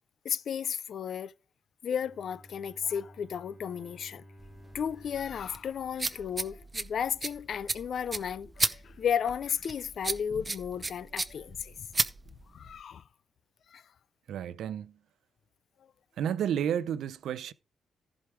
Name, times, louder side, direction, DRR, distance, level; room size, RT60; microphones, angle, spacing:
voice 1, 0.2-1.3 1.8-4.2 4.7-11.9 12.5-13.0 13.7-13.8, left 8 dB, 55° left, 0.4 m, -34 dB
Bowed string instrument, 1.9-6.9, equal, 30° left, 3.6 m, -55 dB
sound 1, 4.4-12.8, right 3 dB, 20° right, 0.7 m, -35 dB
voice 2, 14.3-15.0 16.2-17.5, right 9 dB, 75° right, 0.6 m, -31 dB
15.0 x 5.0 x 4.6 m
cardioid pair, 145°, 0 cm